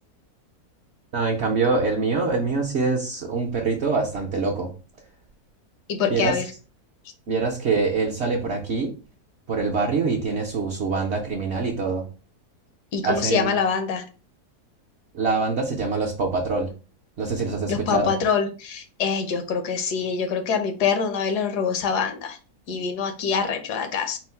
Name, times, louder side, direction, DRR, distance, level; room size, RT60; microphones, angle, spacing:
voice 1, 1.1-4.7 6.1-6.4 7.3-8.9 9.5-12.1 13.0-13.6 15.1-16.7 17.2-18.1, right 4 dB, 55° right, -1 dB, 0.8 m, -24 dB
voice 2, 5.9-6.4 12.9-14.0 17.7-22.4 22.7-24.2, left 6 dB, 85° left, 6 dB, 1.3 m, -25 dB
4.4 x 2.0 x 4.2 m, 0.34 s
omnidirectional pair, 1.7 m